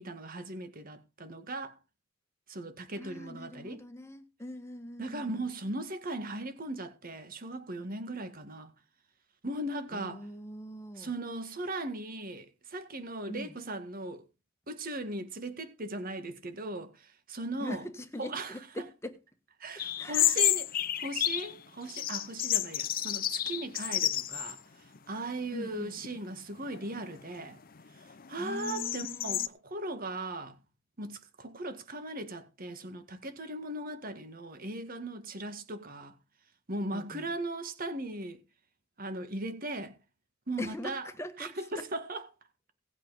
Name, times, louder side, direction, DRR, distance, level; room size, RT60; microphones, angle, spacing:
voice 1, 0.0-1.8 2.5-3.8 5.0-8.7 9.4-10.3 11.0-14.2 14.7-17.8 18.2-18.9 19.6-20.7 21.0-27.6 28.0-30.6 31.0-36.2 36.7-38.4 39.0-40.0 40.5-41.1 41.4-42.2, right 2 dB, 45° right, 1.9 m, -38 dB
voice 2, 3.0-5.5 9.9-11.1 13.3-13.6 17.5-19.2 19.7-20.4 25.5-26.0 28.4-29.5 36.9-37.3 40.6-41.8, left 1 dB, 15° left, 1.5 m, -42 dB
sound 1, 19.8-21.5 21.9-24.6 24.9-25.0 25.8-26.2 26.7-29.5, left 12 dB, 45° left, 0.7 m, -31 dB
18.0 x 8.2 x 4.1 m
head